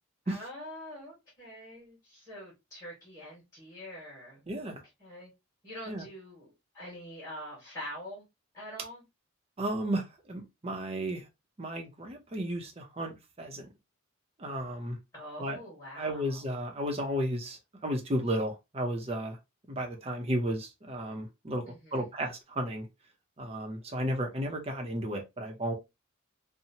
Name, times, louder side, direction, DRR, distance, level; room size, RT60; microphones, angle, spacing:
voice 1, 0.2-5.3 5.6-8.2 8.5-9.0 15.1-16.4 21.6-22.1, equal, 15° left, 1.5 m, -45 dB
voice 2, 4.5-4.8 5.9-6.0 9.6-11.2 11.6-13.1 13.4-13.7 14.4-15.0 15.4-15.6 16.0-19.4 19.7-21.6 21.9-22.9 23.4-25.7, equal, 30° right, 0.6 m, -33 dB
2.8 x 2.1 x 2.6 m
head